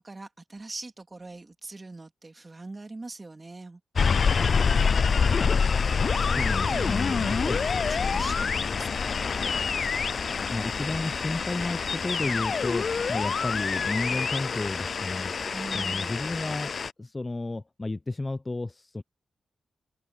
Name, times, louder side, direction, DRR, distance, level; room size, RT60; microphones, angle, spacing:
voice 1, 0.0-3.8 6.1-9.2 15.5-16.2, right 2 dB, 30° right, 3.3 m, -42 dB
sound 1, 4.0-16.9, left 5 dB, 60° left, 0.5 m, -26 dB
voice 2, 6.4-7.6 10.5-15.3 15.7-19.0, left 2 dB, 30° left, 0.8 m, -32 dB
cardioid pair, 50°, 0 cm